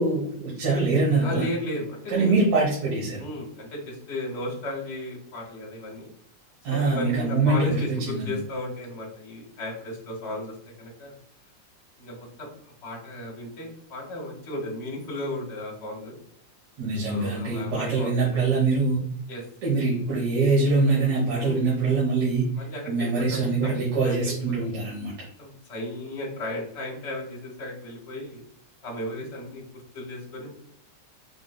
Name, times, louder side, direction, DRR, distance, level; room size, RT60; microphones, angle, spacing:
voice 1, 0.0-1.4 2.1-3.2 6.6-7.8 8.1-8.3 16.8-19.0 19.6-22.5 22.9-25.1, right 3 dB, 80° right, -6 dB, 2.6 m, -23 dB
voice 2, 1.2-2.4 3.2-6.1 6.7-11.2 12.0-12.5 12.8-16.2 17.1-18.4 19.3-19.4 21.4-21.6 22.5-23.7 24.0-24.4 25.4-28.4 28.8-29.6 29.9-30.5, left 1 dB, 30° left, -1 dB, 1.3 m, -35 dB
5.6 x 3.9 x 2.3 m, 0.68 s
omnidirectional pair, 3.3 m